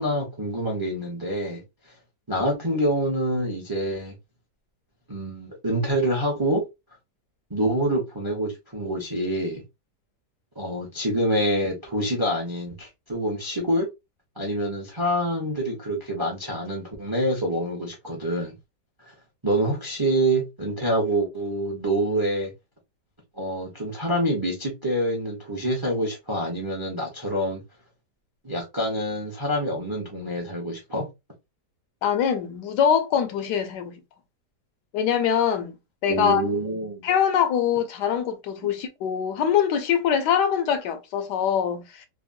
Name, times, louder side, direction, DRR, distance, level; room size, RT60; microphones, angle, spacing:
voice 1, 0.0-1.6 2.3-4.1 5.1-6.6 7.5-9.6 10.6-13.9 14.4-18.5 19.4-22.5 23.4-27.6 28.4-31.0 36.1-37.1 38.6-38.7, right 1 dB, 30° right, 0.4 m, -26 dB
voice 2, 32.0-34.0 34.9-35.7 36.0-36.4 37.0-42.1, left 8 dB, 80° left, 1.2 m, -23 dB
3.4 x 2.0 x 2.5 m
omnidirectional pair, 1.8 m